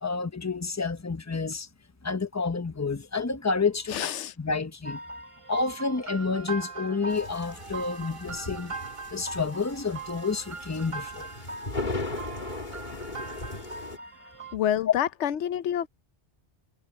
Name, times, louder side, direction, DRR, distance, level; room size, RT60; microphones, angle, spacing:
voice 1, 0.0-1.7 2.0-4.0 4.4-5.0 5.5-8.8 9.1-11.3, left 4 dB, 15° left, 0.9 m, -29 dB
voice 2, 3.9-4.3 14.5-15.9, left 10 dB, 85° left, 1.0 m, -28 dB
sound 1, 4.8-14.6, right 4 dB, 30° right, 1.2 m, -40 dB
sound 2, 7.1-14.0, left 2 dB, 45° left, 2.3 m, -38 dB
omnidirectional pair, 1.2 m